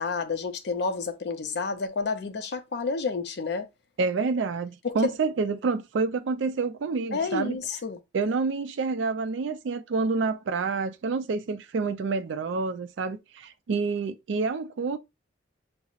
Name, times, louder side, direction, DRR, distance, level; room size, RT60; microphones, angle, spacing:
voice 1, 0.0-3.7 4.8-5.1 7.1-8.0, left 4 dB, 55° left, 0.5 m, -30 dB
voice 2, 4.0-7.6 8.1-15.0, right 4 dB, 70° right, 0.4 m, -28 dB
5.5 x 2.0 x 2.4 m
head